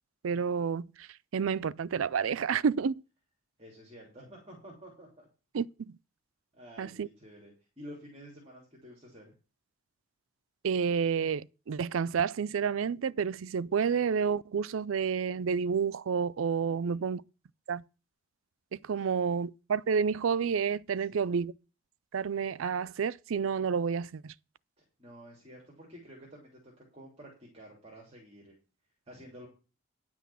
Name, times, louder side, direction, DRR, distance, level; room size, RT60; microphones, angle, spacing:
voice 1, 0.2-1.1 1.3-3.0 5.5-6.0 6.8-7.1 10.6-17.2 17.7-17.8 18.7-21.5 22.1-24.3, right 6 dB, 85° right, 0.4 m, -30 dB
voice 2, 3.6-5.3 6.5-9.3 16.6-17.1 18.9-19.1 21.1-21.3 24.8-28.5 29.1-29.5, equal, 30° right, 3.1 m, -51 dB
10.0 x 6.2 x 7.0 m
head